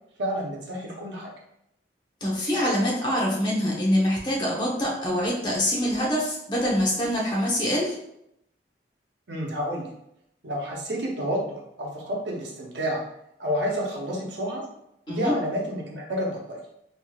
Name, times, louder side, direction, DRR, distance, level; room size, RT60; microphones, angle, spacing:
voice 1, 0.2-1.3 9.3-9.9 10.4-13.0 13.4-14.6 15.1-16.6, equal, 85° right, -2 dB, 0.8 m, -29 dB
voice 2, 2.2-7.9 15.1-15.3, equal, 25° left, -4 dB, 0.8 m, -25 dB
3.4 x 2.8 x 2.3 m, 0.78 s
head